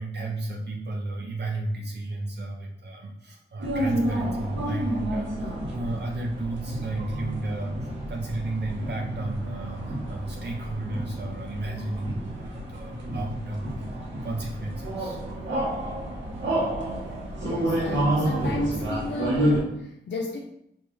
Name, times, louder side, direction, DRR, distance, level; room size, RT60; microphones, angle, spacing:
voice 1, 0.0-15.3 16.6-16.7, right 2 dB, 65° right, 0 dB, 0.5 m, -33 dB
sound 1, 3.6-19.6, right 1 dB, 85° right, 1.0 m, -30 dB
voice 2, 17.4-20.4, left 2 dB, 75° left, -1 dB, 0.5 m, -33 dB
5.2 x 2.3 x 3.1 m, 0.76 s
wide cardioid pair, 100°, 19 cm